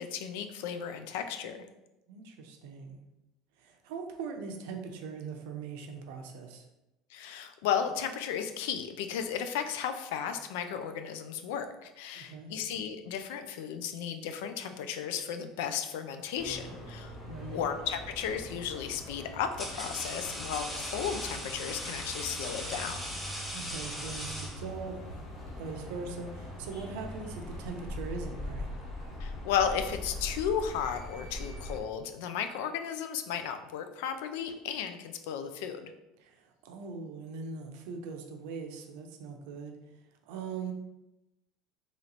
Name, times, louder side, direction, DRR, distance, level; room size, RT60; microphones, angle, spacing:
voice 1, 0.0-1.6 7.1-17.1 17.4-23.3 29.2-35.9, left 8 dB, 80° left, 8 dB, 0.4 m, -34 dB
voice 2, 2.1-3.0 3.6-6.7 12.1-12.5 17.2-17.6 23.5-25.3 25.6-28.7 36.2-39.8 40.2-40.7, right 5 dB, 70° right, 4 dB, 0.6 m, -41 dB
sound 1, 16.3-31.8, left 1 dB, 25° left, 1.1 m, -42 dB
sound 2, 17.9-18.3 19.1-25.0, equal, 5° left, 0.4 m, -39 dB
3.1 x 2.9 x 3.9 m, 0.95 s
cardioid pair, 175°, 0 cm